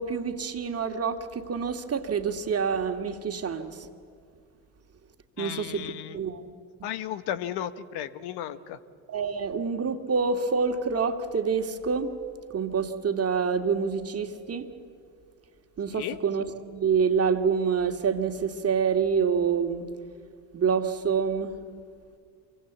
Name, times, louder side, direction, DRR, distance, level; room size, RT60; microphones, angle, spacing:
voice 1, 0.0-3.9 5.4-6.5 9.1-12.2 12.5-14.7 15.8-16.4 16.7-19.9 20.5-21.6, right 6 dB, 35° right, 6 dB, 2.4 m, -27 dB
voice 2, 5.4-6.2 6.8-8.8 15.9-16.2, left 11 dB, 65° left, 13 dB, 1.3 m, -34 dB
26.5 x 24.0 x 8.3 m, 2.2 s
hypercardioid pair, 75°, 42 cm